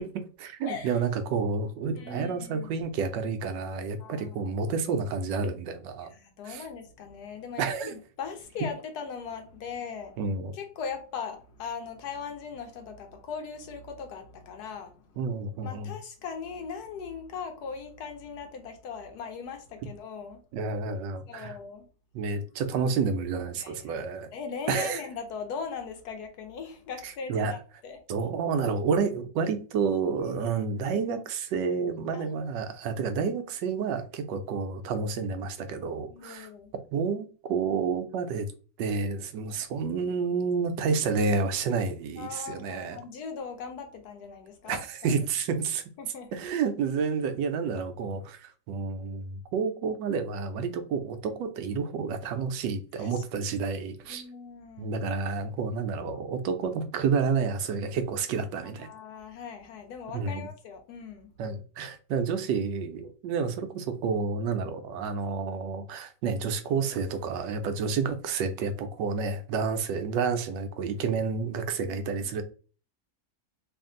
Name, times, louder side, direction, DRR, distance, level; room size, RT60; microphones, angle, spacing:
voice 1, 0.0-6.1 6.4-6.6 7.6-7.9 10.2-10.5 15.2-15.9 20.5-21.6 22.1-24.3 24.7-25.0 27.0-27.6 28.1-36.5 36.9-38.5 38.8-43.0 44.7-45.8 46.3-54.2 54.8-58.9 60.1-60.5 61.4-72.4, right 5 dB, 85° right, 1.2 m, -30 dB
voice 2, 0.6-1.0 2.0-2.7 4.0-4.5 6.1-10.2 10.5-15.0 15.6-20.4 21.3-21.9 23.6-23.8 24.3-28.0 30.4-30.5 32.1-32.3 36.1-36.7 42.2-45.1 46.0-46.4 53.0-53.2 54.1-54.9 58.8-61.3 71.8-72.4, left 6 dB, 70° left, 1.1 m, -39 dB
3.3 x 2.5 x 3.7 m
omnidirectional pair, 1.9 m